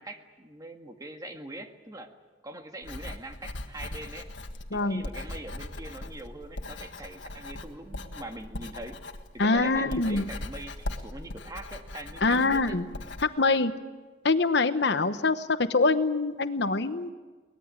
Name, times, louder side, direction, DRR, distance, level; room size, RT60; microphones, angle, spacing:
voice 1, 0.0-2.1 2.4-4.3 4.7-9.0 9.3-12.8, right 1 dB, 20° right, 5 dB, 1.8 m, -42 dB
Writing, 2.8-13.3, left 1 dB, 90° left, 1.7 m, -40 dB
voice 2, 4.7-5.0 9.4-10.3 12.2-12.8 13.2-13.7 14.2-17.1, left 3 dB, 65° left, 10 dB, 1.0 m, -24 dB
23.5 x 19.5 x 8.9 m, 1.3 s
head